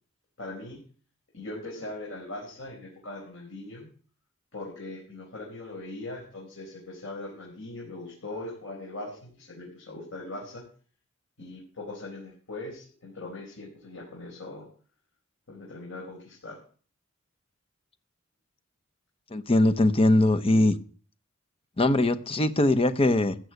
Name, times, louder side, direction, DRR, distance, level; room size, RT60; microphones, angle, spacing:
voice 1, 0.4-0.8 1.3-3.9 4.5-10.6 11.4-14.7 15.5-16.6, left 2 dB, 80° left, 4.8 m, -40 dB
voice 2, 19.3-20.8 21.8-23.4, left 1 dB, 30° left, 0.9 m, -21 dB
14.5 x 6.4 x 8.0 m
head